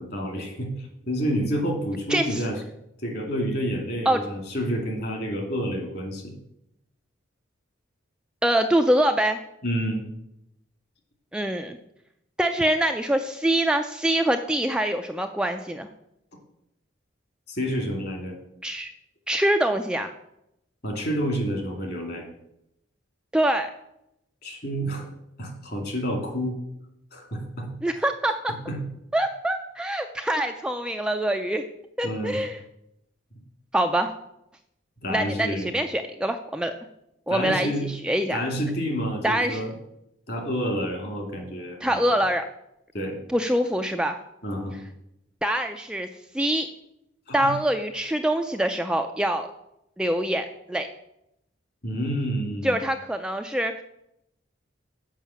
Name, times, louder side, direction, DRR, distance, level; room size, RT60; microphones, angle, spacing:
voice 1, 0.0-2.6 3.0-6.3 9.6-10.0 17.5-18.4 20.8-22.2 24.4-25.1 25.4-26.6 27.1-27.7 28.7-28.8 32.0-32.4 35.0-35.7 37.3-37.9 38.3-39.7 40.3-42.0 42.9-43.2 44.4-44.8 47.3-47.5 51.8-52.8, equal, 50° left, 2 dB, 2.3 m, -29 dB
voice 2, 2.1-2.4 4.1-4.2 8.4-9.4 11.3-11.8 12.4-15.9 18.6-18.9 19.3-20.1 23.3-23.7 27.8-28.5 29.1-31.6 32.0-32.6 33.7-34.1 35.1-36.7 37.3-38.4 39.2-39.7 41.8-42.4 43.3-44.2 45.4-46.1 46.3-46.7 47.3-49.5 50.0-50.9 52.6-53.8, right 1 dB, 5° right, 5 dB, 0.3 m, -24 dB
7.4 x 5.5 x 7.0 m, 0.81 s
head